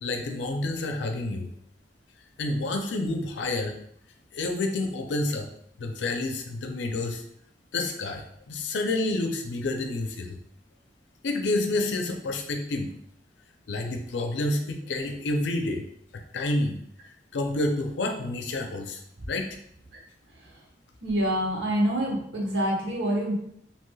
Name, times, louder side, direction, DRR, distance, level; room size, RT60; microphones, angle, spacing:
voice 1, 0.0-1.5 2.4-3.7 4.3-5.5 5.8-7.2 7.7-10.4 11.2-12.9 13.7-15.8 16.1-16.8 17.3-19.0 19.3-19.6, left 2 dB, 85° left, 5 dB, 0.4 m, -29 dB
voice 2, 21.0-23.3, equal, 85° right, -3 dB, 1.0 m, -26 dB
3.0 x 2.8 x 2.2 m, 0.68 s
head